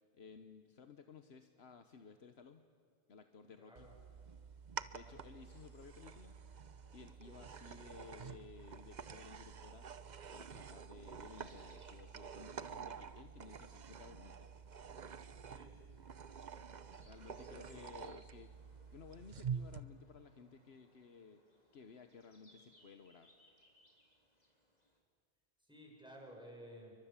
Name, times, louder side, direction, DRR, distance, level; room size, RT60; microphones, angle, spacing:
voice 1, 0.1-2.7 3.1-3.9 4.9-6.4 6.9-9.9 10.3-14.5 17.0-18.5 18.9-21.4 21.7-23.3, left 5 dB, 75° left, 8 dB, 1.3 m, -56 dB
voice 2, 3.6-3.9 4.9-5.2 7.2-7.4 15.5-15.8 17.3-17.8 25.6-26.9, equal, 5° right, 0 dB, 6.5 m, -56 dB
Matchbox car, 3.8-19.8, right 6 dB, 45° right, 0.8 m, -48 dB
sound 1, 5.1-25.0, equal, 40° left, 3.6 m, -71 dB
29.5 x 24.0 x 7.4 m, 2.1 s
omnidirectional pair, 1.1 m